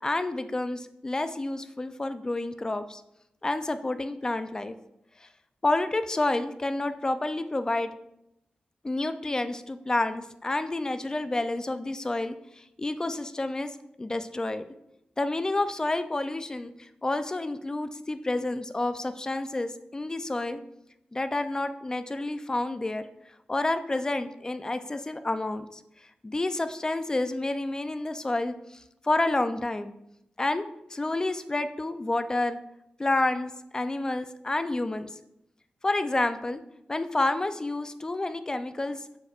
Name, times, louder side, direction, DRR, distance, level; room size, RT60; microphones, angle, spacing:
voice 1, 0.0-3.0 3.4-4.7 5.2-5.3 5.6-7.9 8.8-14.7 15.2-20.6 21.1-23.1 23.5-25.8 26.2-29.9 30.4-32.6 33.0-35.1 35.8-36.6 36.9-39.0, left 2 dB, 20° left, 10 dB, 0.4 m, -29 dB
7.1 x 6.5 x 2.4 m, 0.83 s
wide cardioid pair, 140°, 3 cm